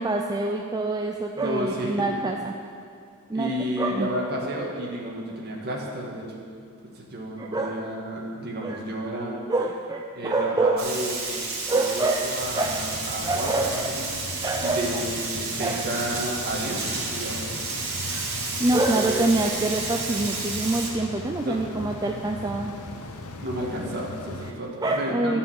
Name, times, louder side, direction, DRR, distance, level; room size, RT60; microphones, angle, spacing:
voice 1, 0.0-2.5 3.3-3.5 3.8-4.1 7.4-7.8 8.6-8.8 9.5-10.8 11.7-12.2 12.5-12.8 13.2-13.9 14.4-15.0 15.6-15.8 18.1-18.2 18.6-22.7 24.8-25.4, right 2 dB, 15° right, 2 dB, 0.4 m, -26 dB
voice 2, 1.4-2.2 3.3-6.3 6.8-9.3 10.2-11.4 11.7-14.1 14.6-17.4 19.1-19.3 21.5-21.6 23.4-25.4, equal, 45° right, -2 dB, 1.9 m, -32 dB
Frying (food), 10.8-20.9, right 3 dB, 70° right, 2.3 m, -31 dB
sound 1, 12.4-24.5, left 2 dB, 85° left, 0.9 m, -38 dB
13.0 x 5.5 x 7.5 m, 2.3 s
head